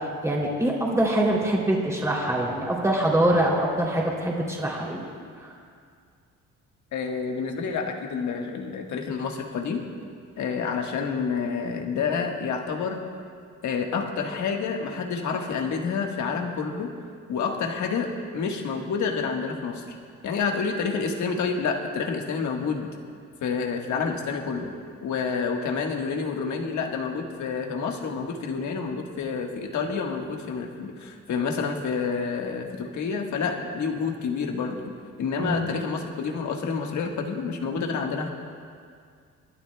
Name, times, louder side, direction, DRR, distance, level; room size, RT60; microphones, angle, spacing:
voice 1, 0.2-5.0 5.4-5.5 35.4-35.7, right 1 dB, 10° right, -3 dB, 2.9 m, -24 dB
voice 2, 6.9-9.8 10.4-13.0 13.6-16.9 17.3-19.9 20.2-22.9 23.4-24.7 25.0-34.8 35.2-38.3, left 5 dB, 70° left, 2 dB, 1.5 m, -28 dB
28.5 x 11.5 x 2.3 m, 2.2 s
cardioid pair, 90°, 30 cm